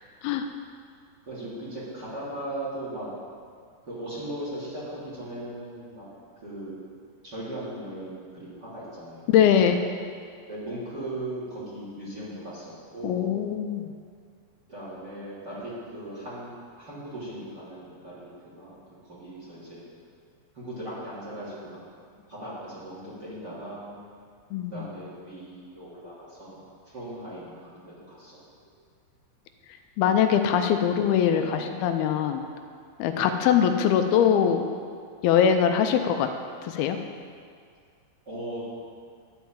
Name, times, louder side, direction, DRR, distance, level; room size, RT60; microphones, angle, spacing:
voice 1, 1.3-3.1 3.9-6.1 6.4-6.8 7.2-9.8 10.5-13.4 14.7-16.5 16.8-18.3 18.5-19.8 20.5-21.8 22.3-24.0 24.7-28.4 31.2-31.6 33.1-33.4 38.2-38.6, right 1 dB, 25° right, -8 dB, 3.2 m, -38 dB
voice 2, 9.3-9.8 13.0-13.9 24.5-24.9 30.0-32.4 33.0-34.7 35.2-36.3 36.6-37.0, left 8 dB, 80° left, 6 dB, 2.4 m, -22 dB
11.5 x 5.8 x 8.7 m, 2.1 s
omnidirectional pair, 4.7 m